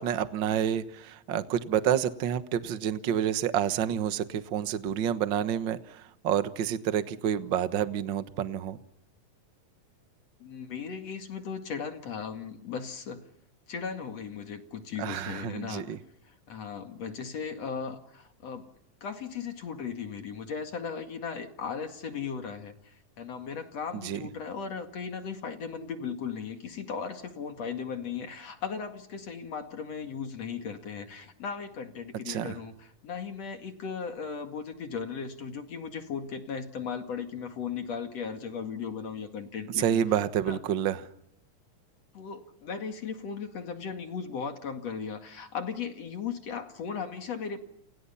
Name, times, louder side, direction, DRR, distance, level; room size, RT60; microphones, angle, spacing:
voice 1, 0.0-5.8 6.2-8.8 15.0-16.0 24.0-24.2 32.3-32.5 39.8-41.0, right 9 dB, 65° right, 11 dB, 1.1 m, -28 dB
voice 2, 10.4-13.2 13.7-15.9 16.3-18.7 19.0-40.0 40.5-40.6 42.1-47.6, left 6 dB, 50° left, 6 dB, 2.9 m, -37 dB
29.5 x 29.5 x 5.7 m, 0.80 s
omnidirectional pair, 4.0 m